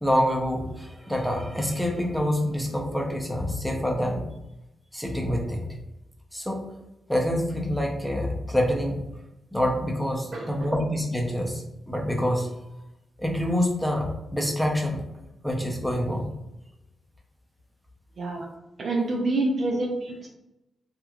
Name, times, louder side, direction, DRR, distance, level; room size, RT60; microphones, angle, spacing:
voice 1, 0.0-4.2 4.9-5.7 6.3-6.7 7.1-9.0 9.5-12.5 13.2-15.0 15.4-16.3, equal, ahead, 0 dB, 0.6 m, -26 dB
voice 2, 10.3-10.7 18.2-18.5 18.8-20.3, right 2 dB, 55° right, 0 dB, 0.4 m, -27 dB
2.9 x 2.4 x 2.3 m, 0.92 s
cardioid pair, 75°, 0 cm